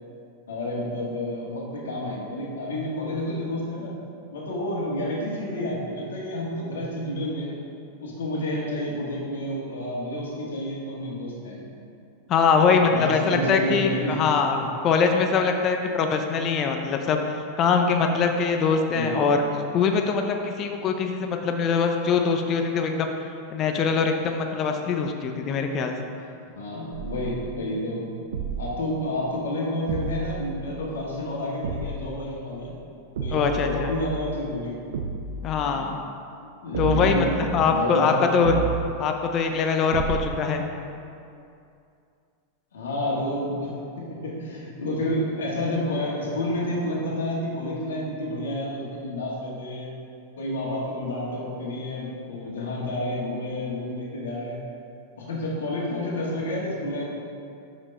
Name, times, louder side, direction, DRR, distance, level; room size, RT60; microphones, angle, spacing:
voice 1, 0.5-3.9 4.3-7.6 8.0-11.6 12.7-14.2 14.6-14.7 18.9-19.4 26.6-28.1 28.6-32.7 33.2-34.9 35.6-35.9 36.6-37.3 37.6-38.3 42.7-43.7 44.0-49.9 50.4-54.6 55.2-57.1, left 1 dB, 90° left, -4 dB, 1.6 m, -30 dB
voice 2, 12.3-14.6 14.8-17.2 17.6-19.4 19.7-23.1 23.5-26.0 33.3-33.9 35.4-36.0 36.8-38.5 39.0-40.6, left 5 dB, 35° left, 4 dB, 0.6 m, -23 dB
sound 1, 26.9-27.7 28.3-28.9 29.9-30.9 31.6-32.2 33.2-34.2 34.9-35.5 36.7-37.9 38.4-39.1 39.9-40.5, right 5 dB, 80° right, 0.6 m, -32 dB
5.3 x 5.0 x 5.4 m, 2.5 s
hypercardioid pair, 120°, 0 cm